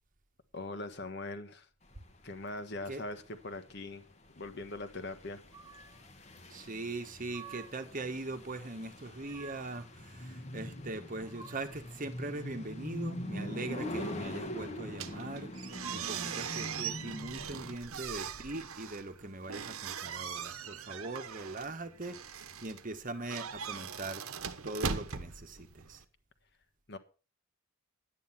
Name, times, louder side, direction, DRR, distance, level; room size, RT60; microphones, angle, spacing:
voice 1, 0.5-1.7 2.2-4.0 4.4-5.4 26.9-27.0, left 2 dB, 50° left, 1.4 m, -41 dB
sound 1, 1.9-17.7, left 1 dB, 30° left, 1.3 m, -43 dB
sound 2, 5.5-6.1 6.9-7.9 8.9-9.9 10.8-12.0 13.5-14.4 15.5-16.5, right 5 dB, 20° right, 0.6 m, -51 dB
voice 2, 6.5-24.2 24.6-26.0, right 2 dB, 40° right, 1.2 m, -41 dB
sound 3, 14.9-26.0, right 6 dB, 80° right, 1.1 m, -41 dB
11.0 x 9.3 x 5.7 m
head